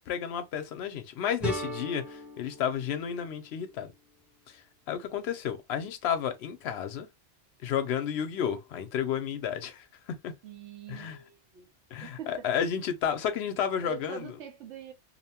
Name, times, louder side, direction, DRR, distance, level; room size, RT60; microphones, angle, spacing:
voice 1, 0.1-3.9 4.5-7.1 7.6-10.3 10.9-11.2 11.9-14.3, left 8 dB, 70° left, 0.8 m, -32 dB
sound 1, 1.4-4.3, right 1 dB, ahead, 0.7 m, -39 dB
voice 2, 10.4-11.7 12.0-12.5 13.8-14.9, right 9 dB, 80° right, 1.0 m, -43 dB
2.8 x 2.1 x 2.8 m
omnidirectional pair, 1.2 m